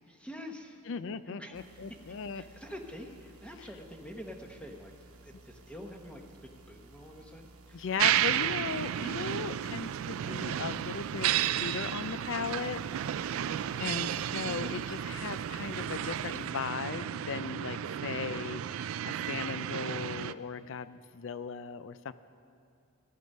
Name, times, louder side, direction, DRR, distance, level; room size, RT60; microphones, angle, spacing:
voice 1, 0.1-0.8 1.3-1.8 2.3-4.9 5.2-6.2 6.7-8.0 13.8-15.2, equal, 5° left, 3 dB, 1.0 m, -47 dB
voice 2, 0.9-2.4 7.7-11.3 11.6-12.8 13.3-22.1, left 6 dB, 60° left, 14 dB, 0.4 m, -37 dB
sound 1, 1.5-16.5, right 2 dB, 80° right, 1.1 m, -56 dB
sound 2, 8.0-20.3, right 11 dB, 60° right, 0.3 m, -32 dB
15.5 x 12.0 x 5.4 m, 2.4 s
head